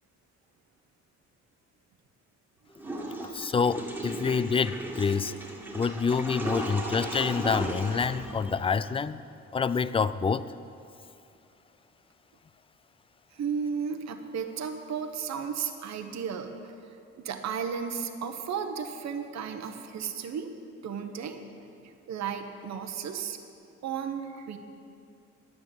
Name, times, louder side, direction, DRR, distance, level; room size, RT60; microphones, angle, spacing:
Water / Toilet flush, 2.8-9.0, right 1 dB, 5° right, 2.1 m, -36 dB
voice 1, 3.3-5.3 5.7-9.2 9.5-10.5, left 5 dB, 20° left, 15 dB, 0.3 m, -27 dB
voice 2, 13.3-20.5 20.8-21.4 21.8-23.4 23.8-24.6, right 6 dB, 65° right, 6 dB, 1.0 m, -34 dB
10.5 x 8.4 x 7.5 m, 2.6 s
cardioid pair, 90°, 30 cm